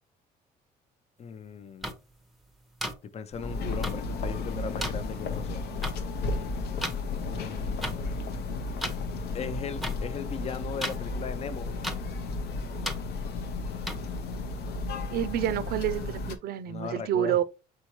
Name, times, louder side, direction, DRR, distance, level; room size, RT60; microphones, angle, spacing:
voice 1, 1.2-1.9 3.1-5.6 7.3-8.5 9.3-11.7 16.7-17.4, left 6 dB, 40° left, 0.6 m, -38 dB
sound 1, 1.8-1.9 2.8-2.9 3.8-3.9 4.8-4.9 5.8-5.9 6.8-7.0 7.8-7.9 8.8-9.0 9.8-9.9 10.8-11.0 11.8-12.0 12.8-13.0 13.9-14.0, equal, ahead, 0.7 m, -32 dB
sound 2, 3.3-16.4, left 3 dB, 75° left, 0.8 m, -33 dB
voice 2, 15.1-17.4, right 11 dB, 65° right, 0.5 m, -28 dB
4.4 x 3.6 x 3.0 m
cardioid pair, 110°, 17 cm